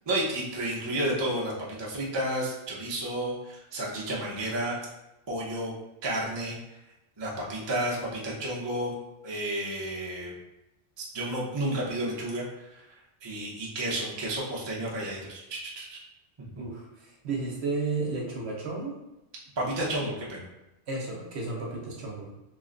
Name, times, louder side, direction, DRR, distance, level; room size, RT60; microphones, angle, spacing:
voice 1, 0.1-4.8 5.3-5.7 6.0-6.6 7.2-8.9 9.2-10.4 11.0-12.8 13.2-16.0 19.6-20.5, right 1 dB, 30° right, -4 dB, 0.6 m, -31 dB
voice 2, 16.6-19.0 20.9-22.3, right 3 dB, 65° right, -2 dB, 0.9 m, -33 dB
3.2 x 2.1 x 3.7 m, 0.94 s
omnidirectional pair, 1.3 m